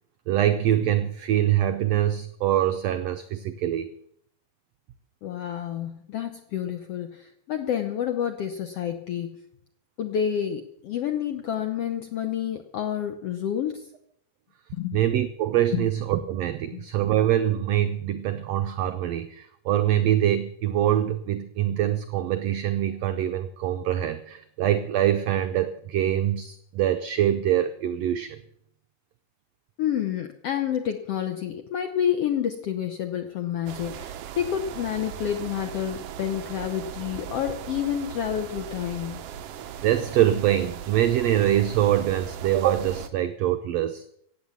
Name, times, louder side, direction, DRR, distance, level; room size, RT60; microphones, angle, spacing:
voice 1, 0.3-3.9 14.9-28.4 39.8-44.0, right 11 dB, 85° right, 9 dB, 1.4 m, -24 dB
voice 2, 5.2-9.4 10.0-13.9 14.7-15.0 15.7-15.9 16.7-16.8 29.8-39.2, left 9 dB, 75° left, 7 dB, 1.4 m, -29 dB
sound 1, 33.7-43.1, right 9 dB, 70° right, 1.5 m, -38 dB
16.0 x 9.1 x 7.1 m, 0.72 s
omnidirectional pair, 3.8 m